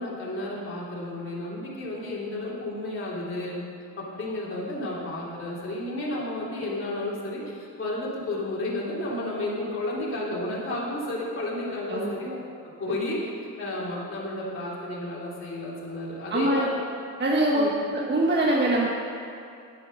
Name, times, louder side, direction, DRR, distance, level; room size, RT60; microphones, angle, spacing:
voice 1, 0.0-3.6 4.0-12.4 12.8-13.3 13.6-16.7 17.5-17.7, left 1 dB, 35° left, -6 dB, 3.1 m, -32 dB
voice 2, 17.2-17.6 17.9-18.9, right 1 dB, 30° right, -3 dB, 1.3 m, -23 dB
9.9 x 9.3 x 6.4 m, 2.5 s
cardioid pair, 105°, 36 cm